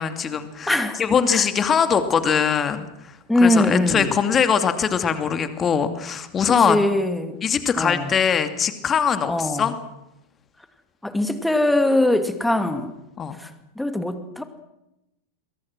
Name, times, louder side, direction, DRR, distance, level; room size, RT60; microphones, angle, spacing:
voice 1, 0.0-6.8 7.4-9.7 13.2-13.4, left 7 dB, 25° left, 9 dB, 2.6 m, -22 dB
voice 2, 0.7-1.0 1.3-1.4 3.3-4.1 6.7-7.4 7.8-8.1 9.3-9.7 11.0-12.9 13.4-13.5 13.8-14.4, left 1 dB, 5° left, 9 dB, 2.5 m, -21 dB
28.5 x 23.0 x 6.2 m, 0.90 s
figure-of-eight pair, 90°, 0 cm